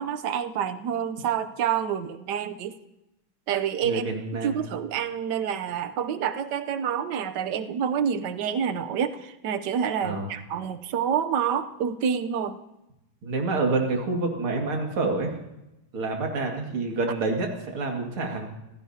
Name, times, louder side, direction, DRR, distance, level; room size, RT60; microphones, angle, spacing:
voice 1, 0.0-2.7 3.5-4.0 4.4-9.2 9.4-12.6, right 8 dB, 65° right, 11 dB, 1.3 m, -28 dB
voice 2, 3.8-4.6 10.0-10.3 13.2-15.3 15.9-18.5, right 3 dB, 85° right, 1 dB, 3.1 m, -27 dB
27.0 x 15.5 x 2.8 m, 0.91 s
omnidirectional pair, 2.3 m